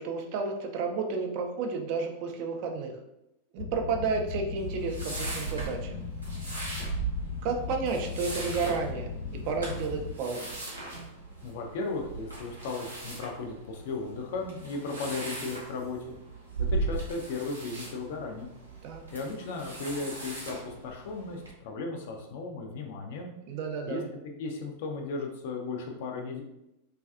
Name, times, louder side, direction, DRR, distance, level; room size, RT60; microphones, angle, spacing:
voice 1, 0.0-2.9 3.5-6.0 7.4-9.1 9.5-10.6 18.8-19.0 23.5-24.1, right 4 dB, 45° right, 3 dB, 0.4 m, -31 dB
sound 1, 3.6-10.1, left 5 dB, 80° left, 0.9 m, -38 dB
sound 2, 4.6-21.5, right 3 dB, 80° right, 0.7 m, -38 dB
voice 2, 11.4-16.2 16.6-18.5 19.1-23.3 23.9-26.4, left 3 dB, 50° left, 2 dB, 0.4 m, -36 dB
2.4 x 2.3 x 2.4 m, 0.86 s
figure-of-eight pair, 90°, 0 cm